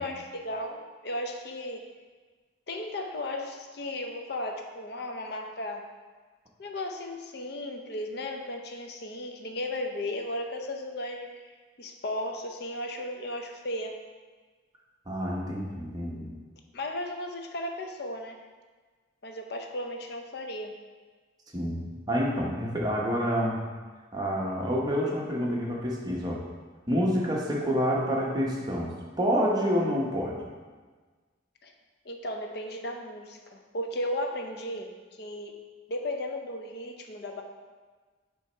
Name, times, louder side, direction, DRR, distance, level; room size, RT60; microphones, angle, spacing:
voice 1, 0.0-1.9 2.7-5.8 6.6-11.4 11.8-14.0 16.7-18.4 19.2-20.8 31.6-31.7 32.0-35.6 35.9-37.4, left 1 dB, 55° left, 3 dB, 0.6 m, -35 dB
voice 2, 15.1-16.3 21.5-23.6 24.1-26.4 26.9-30.4, equal, 20° right, -3 dB, 0.9 m, -28 dB
7.3 x 2.9 x 4.5 m, 1.4 s
head